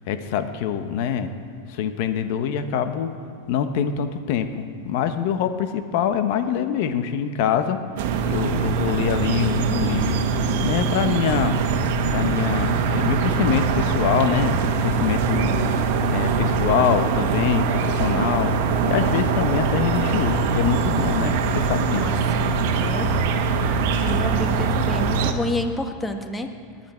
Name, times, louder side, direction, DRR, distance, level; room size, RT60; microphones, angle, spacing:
voice 1, 0.1-1.3 1.7-3.1 3.5-7.8 8.3-10.2 10.6-11.6 12.1-14.5 14.8-15.5 16.1-18.5 18.9-22.1, left 8 dB, 60° left, 9 dB, 1.1 m, -24 dB
sound 1, 8.0-25.3, right 5 dB, 65° right, 1.2 m, -22 dB
voice 2, 21.9-23.3 24.0-26.5, left 1 dB, 10° left, 5 dB, 1.4 m, -29 dB
19.5 x 10.5 x 4.5 m, 2.3 s
hypercardioid pair, 105°, 0 cm